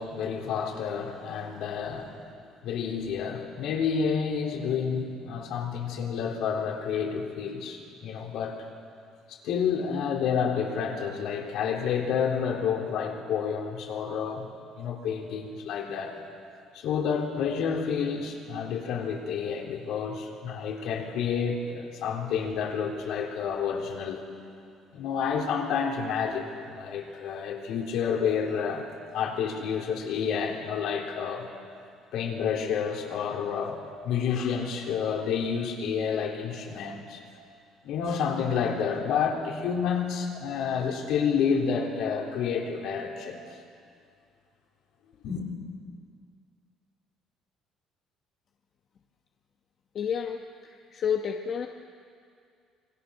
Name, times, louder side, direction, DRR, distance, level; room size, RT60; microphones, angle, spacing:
voice 1, 0.0-2.2 2.6-8.6 9.3-14.5 14.8-16.2 16.7-24.2 24.9-28.8 29.1-31.5 32.1-37.2 37.8-43.4 45.2-45.4, left 6 dB, 70° left, 0 dB, 3.7 m, -29 dB
voice 2, 49.9-51.7, left 7 dB, 45° left, 3 dB, 1.1 m, -30 dB
26.5 x 21.0 x 6.5 m, 2.3 s
cardioid pair, 130°, 0 cm